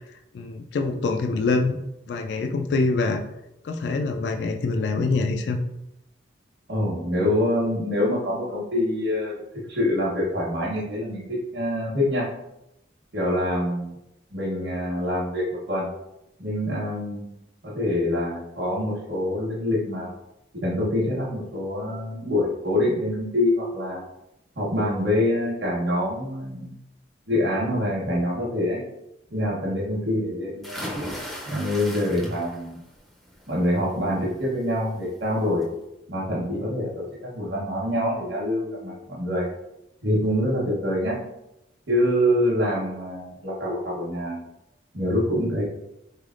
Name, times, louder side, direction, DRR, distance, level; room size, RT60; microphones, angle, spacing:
voice 1, 0.3-1.7 2.1-3.2 3.6-5.6, left 3 dB, 65° left, 5 dB, 0.3 m, -25 dB
voice 2, 6.7-9.4 9.7-12.3 13.1-13.9 14.3-15.9 16.4-17.2 17.6-20.1 20.5-24.0 24.6-26.7 27.3-28.8 29.3-30.9 31.5-32.8 33.5-35.7 36.1-39.5 40.0-41.2 41.9-44.4 44.9-45.6, left 1 dB, 75° right, -6 dB, 1.0 m, -25 dB
sound 1, 30.6-32.7 33.1-33.6 34.9-35.0 35.4-35.5, equal, ahead, 0.4 m, -35 dB
3.9 x 3.3 x 2.4 m, 0.86 s
head